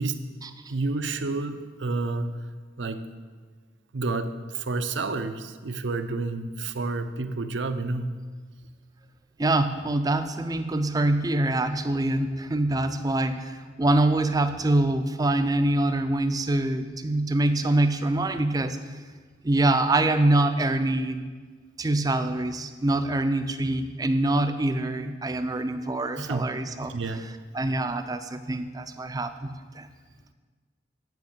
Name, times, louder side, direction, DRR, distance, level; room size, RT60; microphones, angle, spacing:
voice 1, 0.7-2.4 2.8-3.1 3.9-8.1 26.2-26.5 26.9-27.2, right 3 dB, 75° right, 9 dB, 0.6 m, -29 dB
voice 2, 9.4-18.8 19.4-21.3 21.8-26.9 27.5-29.9, right 2 dB, 20° right, 9 dB, 0.4 m, -25 dB
9.3 x 5.8 x 7.3 m, 1.5 s
head